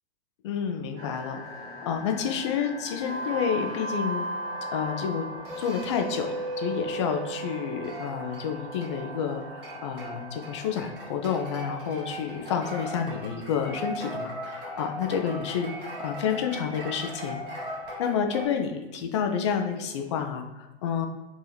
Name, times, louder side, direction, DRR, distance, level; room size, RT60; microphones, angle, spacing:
voice 1, 0.4-4.3 4.7-5.3 5.6-15.7 16.0-17.4 18.0-21.1, left 7 dB, 30° left, 4 dB, 0.4 m, -29 dB
sound 1, 1.0-18.5, right 1 dB, 55° right, 1.2 m, -37 dB
4.6 x 2.8 x 3.2 m, 1.1 s
figure-of-eight pair, 110°, 32 cm